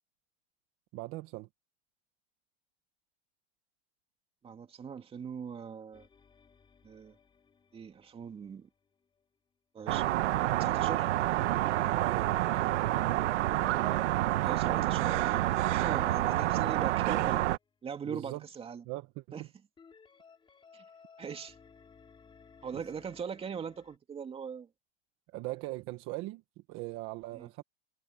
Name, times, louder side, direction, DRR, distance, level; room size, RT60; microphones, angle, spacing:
voice 1, 0.9-1.5 12.0-13.0 18.1-18.4 18.8-19.5 22.7-22.8 25.3-26.4 26.7-27.6, right 19 dB, 40° right, 1.4 m, -40 dB
voice 2, 4.4-6.1 6.8-7.2 7.7-8.7 9.7-10.0 10.6-11.1 14.4-17.5 17.8-18.8 19.3-19.4 20.7-20.8 21.2-21.6 22.6-24.7 27.3-27.5, right 6 dB, 15° right, 2.4 m, -40 dB
sound 1, 5.9-9.3 11.2-17.7 19.8-24.0, left 5 dB, 15° left, 4.8 m, -59 dB
sound 2, 9.9-17.6, right 15 dB, 80° right, 1.2 m, -28 dB
supercardioid pair, 150°, 35 cm